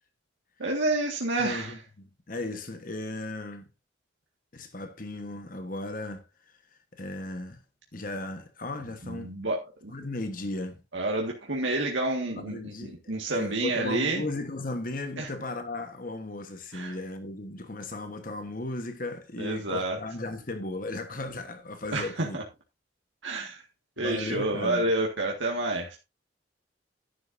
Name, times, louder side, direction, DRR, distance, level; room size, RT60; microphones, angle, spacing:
voice 1, 0.6-1.7 9.0-9.9 10.9-14.2 15.2-15.3 16.7-17.0 19.4-20.0 21.9-22.4 23.2-23.6 24.0-26.0, right 2 dB, 80° right, 1.8 m, -29 dB
voice 2, 1.4-3.7 4.5-6.6 6.9-7.6 7.9-9.3 9.9-10.8 12.3-22.4 24.0-24.8, left 2 dB, 45° left, 1.3 m, -36 dB
11.0 x 10.5 x 2.7 m
head